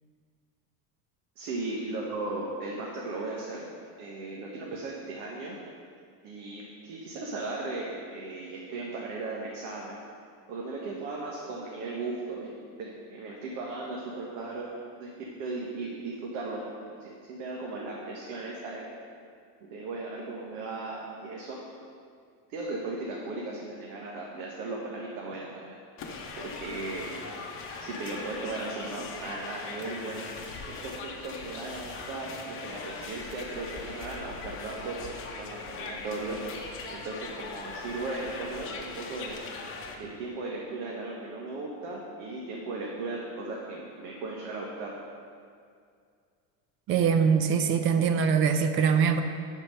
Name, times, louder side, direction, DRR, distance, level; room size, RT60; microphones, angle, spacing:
voice 1, 1.4-3.7 4.0-5.6 6.2-10.0 10.5-12.5 12.8-14.7 15.0-18.9 19.6-21.6 22.5-25.7 26.4-27.2 27.8-30.2 30.6-36.4 36.9-39.3 40.0-44.9, right 3 dB, 70° right, -3 dB, 1.4 m, -37 dB
sound 1, 26.0-39.9, left 4 dB, 35° left, 0.9 m, -40 dB
voice 2, 46.9-49.2, right 6 dB, 35° right, 7 dB, 0.4 m, -23 dB
11.5 x 4.5 x 5.5 m, 2.2 s
cardioid pair, 165°, 39 cm